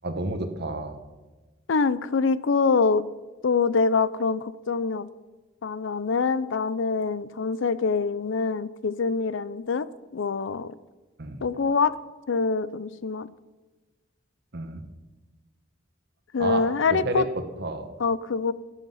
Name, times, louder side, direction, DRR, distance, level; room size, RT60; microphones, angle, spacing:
voice 1, 0.0-1.0 11.2-11.4 14.5-14.9 16.4-16.6 16.9-17.3 17.6-17.9, right 2 dB, 55° right, 8 dB, 1.3 m, -30 dB
voice 2, 1.7-3.1 3.4-5.1 5.6-9.9 10.1-10.7 11.4-12.0 12.3-13.3 16.3-17.2 18.0-18.5, left 4 dB, 65° left, 17 dB, 0.5 m, -25 dB
13.0 x 10.0 x 5.6 m, 1.2 s
head